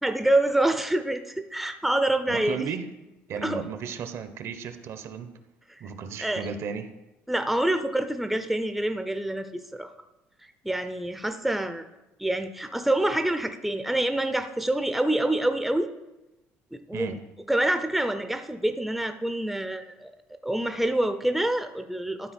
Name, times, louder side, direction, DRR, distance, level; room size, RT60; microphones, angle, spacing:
voice 1, 0.0-2.7 3.4-3.6 5.7-5.8 6.2-6.5 7.3-9.9 10.6-11.9 12.2-15.9 16.7-17.2 17.5-20.1 20.4-22.3, right 1 dB, 5° right, 8 dB, 0.5 m, -26 dB
voice 2, 2.3-2.9 3.3-5.3 5.8-6.9 16.9-17.2, right 6 dB, 60° right, 10 dB, 0.8 m, -34 dB
12.0 x 4.1 x 4.3 m, 0.99 s
cardioid pair, 100°, 5 cm